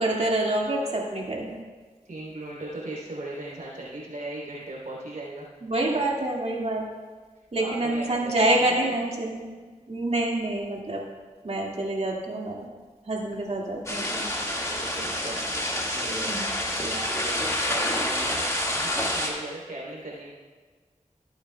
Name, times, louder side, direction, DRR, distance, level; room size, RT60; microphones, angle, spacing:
voice 1, 0.0-1.6 5.6-6.8 7.5-9.6 9.9-11.0 11.4-12.7 13.1-14.3 16.3-16.5, right 2 dB, 55° right, -2 dB, 2.0 m, -27 dB
voice 2, 2.0-5.5 7.6-8.9 14.7-15.4 15.9-16.4 16.8-17.4 17.6-18.5 18.8-20.3, right 1 dB, 85° right, -4 dB, 3.2 m, -38 dB
sound 1, 13.9-19.3, left 1 dB, 25° left, 1.8 m, -28 dB
16.0 x 8.5 x 2.3 m, 1.4 s
cardioid pair, 45°, 13 cm